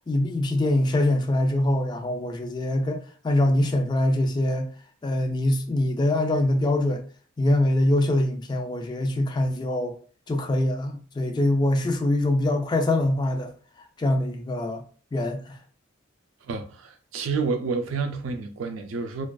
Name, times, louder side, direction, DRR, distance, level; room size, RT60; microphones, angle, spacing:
voice 1, 0.1-4.7 5.0-7.0 7.4-10.0 10.3-13.5 14.0-14.8 15.1-15.6, left 1 dB, 20° left, 0.3 m, -24 dB
voice 2, 16.4-19.3, right 4 dB, 85° right, 0.4 m, -29 dB
2.4 x 2.3 x 2.2 m
head